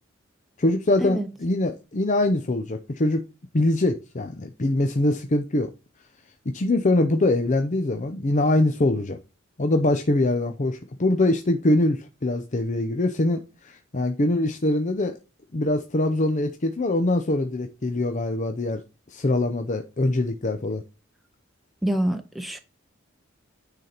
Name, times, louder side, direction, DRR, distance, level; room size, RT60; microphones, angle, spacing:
voice 1, 0.6-3.2 3.5-5.7 6.5-9.2 9.6-15.2 15.5-18.8 19.1-20.8, left 2 dB, 40° left, 0.7 m, -23 dB
voice 2, 21.8-22.6, right 1 dB, ahead, 0.7 m, -26 dB
9.6 x 4.1 x 4.4 m
head